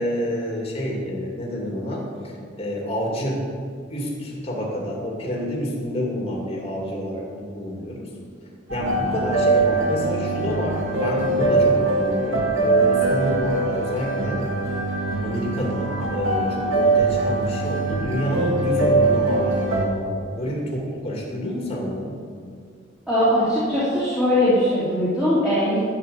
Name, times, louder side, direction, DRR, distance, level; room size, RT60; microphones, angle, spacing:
voice 1, 0.0-3.5 3.9-8.1 8.7-14.5 15.2-22.2, equal, 30° left, -3 dB, 2.5 m, -28 dB
sound 1, 8.7-19.8, right 3 dB, 90° right, 2.2 m, -22 dB
voice 2, 23.1-25.8, left 1 dB, 5° right, -12 dB, 3.0 m, -20 dB
11.5 x 9.5 x 6.7 m, 2.2 s
head